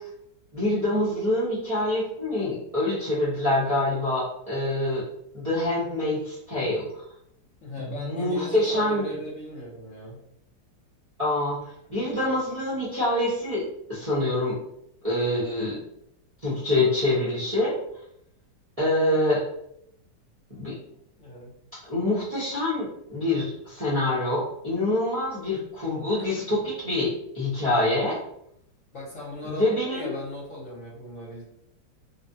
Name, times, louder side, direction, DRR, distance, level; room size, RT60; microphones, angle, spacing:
voice 1, 0.5-5.0 5.3-6.9 7.8-9.1 11.2-11.6 11.9-13.6 13.9-14.6 15.0-15.8 16.4-17.7 18.8-19.4 20.5-20.7 21.8-28.2 29.5-30.2, left 1 dB, 30° right, -11 dB, 0.8 m, -25 dB
voice 2, 7.6-10.2 21.2-21.5 26.3-26.6 28.9-31.4, left 1 dB, 50° left, -6 dB, 1.1 m, -38 dB
3.2 x 2.2 x 2.7 m, 0.75 s
omnidirectional pair, 1.9 m